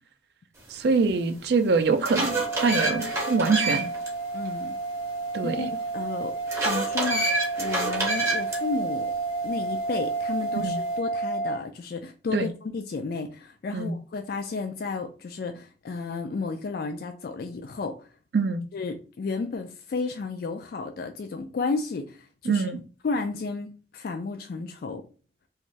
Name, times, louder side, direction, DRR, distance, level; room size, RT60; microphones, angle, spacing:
voice 1, 0.7-3.9 5.3-5.7 10.6-10.8 12.3-12.5 13.7-14.0 18.3-18.6 22.5-22.8, right 4 dB, 60° right, 0.3 m, -24 dB
sound 1, 1.1-1.2 1.7-4.1 4.5-4.6 6.5-8.6, right 2 dB, 15° right, 0.6 m, -27 dB
sound 2, 2.2-11.6, right 3 dB, 25° left, 0.7 m, -31 dB
voice 2, 4.3-4.8 5.4-6.4 6.6-9.1 9.4-18.1 18.7-22.7 23.0-23.7 23.9-25.1, left 4 dB, 55° left, 0.3 m, -32 dB
2.5 x 2.3 x 3.1 m
head